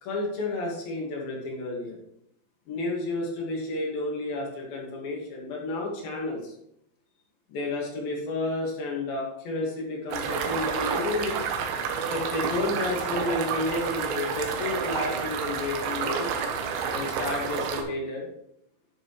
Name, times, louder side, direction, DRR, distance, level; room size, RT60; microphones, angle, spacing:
voice 1, 0.0-2.0 2.7-6.5 7.5-11.4 12.1-16.3 16.9-18.3, left 2 dB, 60° left, -2 dB, 3.7 m, -31 dB
sound 1, 10.1-17.8, right 6 dB, 90° right, 3.6 m, -29 dB
10.5 x 7.2 x 3.3 m, 0.77 s
omnidirectional pair, 5.2 m